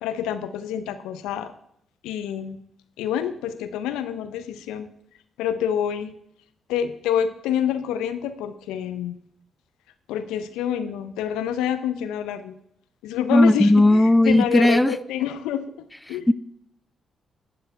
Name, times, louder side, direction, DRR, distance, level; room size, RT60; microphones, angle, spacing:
voice 1, 0.0-1.5 2.0-2.6 3.0-4.9 5.4-6.1 6.7-9.2 10.1-12.6 13.0-16.3, left 9 dB, 75° left, 11 dB, 0.6 m, -27 dB
voice 2, 13.3-14.9 16.3-16.4, left 1 dB, 10° left, 16 dB, 0.4 m, -16 dB
11.0 x 6.8 x 4.7 m, 0.72 s
hypercardioid pair, 40°, 0 cm